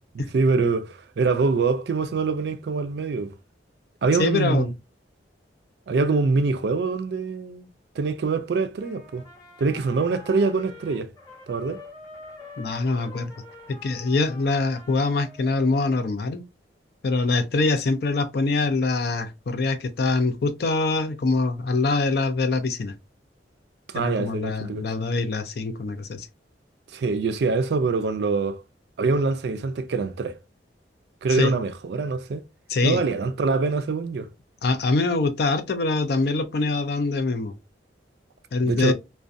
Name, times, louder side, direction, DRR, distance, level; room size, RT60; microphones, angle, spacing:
voice 1, 0.1-3.3 4.0-4.7 5.9-7.7 8.0-9.2 9.6-11.1 11.5-11.8 23.9-24.9 26.9-28.6 29.0-30.4 31.2-32.4 32.8-34.3 38.6-38.9, right 4 dB, 65° right, 0.3 m, -24 dB
voice 2, 4.2-4.7 12.6-13.3 13.7-16.4 17.0-22.9 23.9-26.3 31.3-31.5 32.7-33.0 34.6-37.5 38.5-38.9, left 3 dB, 60° left, 0.4 m, -24 dB
Trumpet, 8.8-16.1, left 3 dB, 20° left, 0.9 m, -46 dB
2.4 x 2.2 x 2.5 m
head